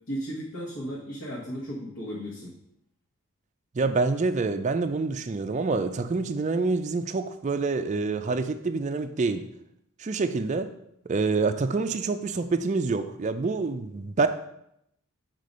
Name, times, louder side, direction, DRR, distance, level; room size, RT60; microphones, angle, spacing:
voice 1, 0.1-2.5, equal, 60° left, 1.3 m, -35 dB
voice 2, 3.7-9.5 10.0-10.7 11.1-14.3, right 4 dB, 35° right, 0.4 m, -27 dB
6.5 x 3.8 x 5.3 m
head